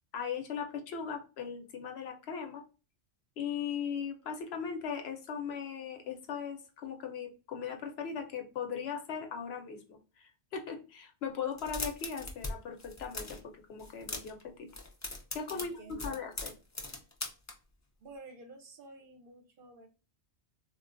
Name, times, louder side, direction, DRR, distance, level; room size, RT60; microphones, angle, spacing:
voice 1, 0.1-2.6 3.4-10.0 10.5-13.4 13.7-14.7 15.3-16.6, left 7 dB, 70° left, 4 dB, 0.9 m, -38 dB
sound 1, 11.5-12.5 12.8-13.4 13.8-14.4 14.7-17.5, left 2 dB, 25° left, 0.3 m, -39 dB
voice 2, 15.5-16.2 18.0-19.9, right 3 dB, 60° right, 5 dB, 0.7 m, -51 dB
3.7 x 2.2 x 2.4 m, 0.33 s
omnidirectional pair, 1.1 m